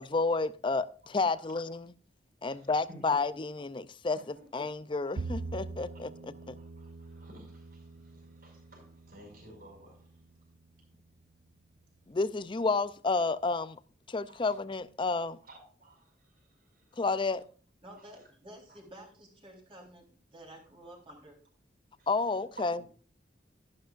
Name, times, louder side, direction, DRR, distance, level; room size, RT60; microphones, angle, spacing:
voice 1, 0.0-1.9 2.4-6.6 12.1-13.8 14.1-15.4 17.0-17.4 22.1-22.8, left 3 dB, 25° left, 16 dB, 0.4 m, -31 dB
voice 2, 2.4-3.0 4.4-4.5 6.6-10.0 14.3-14.5 15.4-16.3 16.6-17.0 18.0-18.1 22.0-22.1 22.6-22.9, right 2 dB, 55° right, 1 dB, 5.5 m, -54 dB
Bowed string instrument, 5.2-11.5, right 3 dB, 75° right, 0.5 m, -44 dB
voice 3, 17.8-21.4, right 1 dB, 30° right, -1 dB, 3.9 m, -51 dB
12.5 x 11.5 x 2.5 m, 0.42 s
head